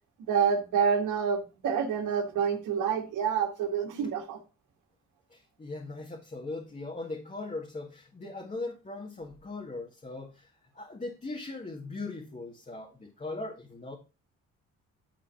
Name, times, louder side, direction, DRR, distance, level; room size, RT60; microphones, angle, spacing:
voice 1, 0.3-4.4, right 7 dB, 90° right, 3 dB, 2.0 m, -28 dB
voice 2, 5.3-14.0, left 2 dB, 25° left, 0 dB, 1.8 m, -39 dB
10.5 x 4.0 x 5.7 m, 0.30 s
cardioid pair, 90°, 30 cm